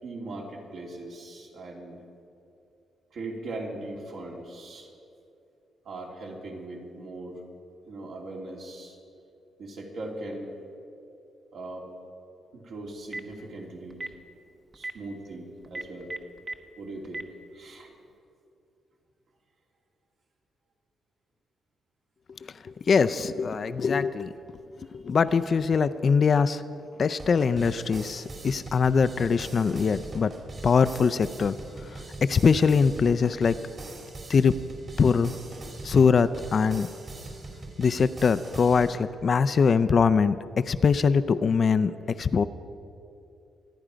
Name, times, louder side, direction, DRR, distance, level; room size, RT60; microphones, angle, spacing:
voice 1, 0.0-2.0 3.1-4.9 5.8-7.4 7.9-9.0 9.6-10.5 11.5-11.9 12.5-14.1 14.7-16.1 16.8-17.2 17.5-17.9, right 2 dB, 60° right, -1 dB, 2.9 m, -39 dB
Telephone, 12.9-13.3 13.9-14.1 14.7-14.9 15.6-16.5 17.0-17.2, right 2 dB, 25° right, 1.0 m, -34 dB
voice 2, 22.6-24.6 24.9-26.6 27.0-30.3 30.6-31.6 31.8-33.6 34.3-34.6 35.0-35.3 35.8-36.9 37.8-41.9 42.2-42.4, left 5 dB, 40° left, 12 dB, 0.4 m, -22 dB
sound 1, 27.2-38.9, right 2 dB, 40° right, 2.9 m, -42 dB
25.5 x 10.0 x 5.1 m, 2.7 s
cardioid pair, 130°, 0 cm